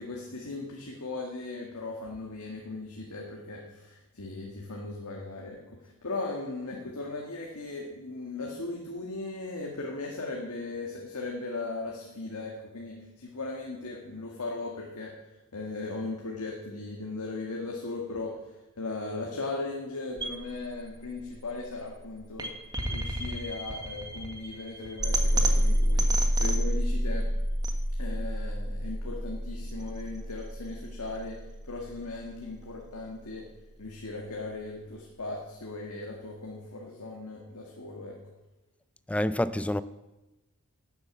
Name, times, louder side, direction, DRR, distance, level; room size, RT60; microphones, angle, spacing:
voice 1, 0.0-15.1 15.5-22.5 22.9-27.3 28.0-33.5 33.8-38.2, left 3 dB, 80° left, 1.8 m, -38 dB
sound 1, 20.2-32.2, equal, 20° right, 1.4 m, -29 dB
voice 2, 39.1-39.8, left 1 dB, 5° left, 0.4 m, -27 dB
11.5 x 8.1 x 8.1 m
head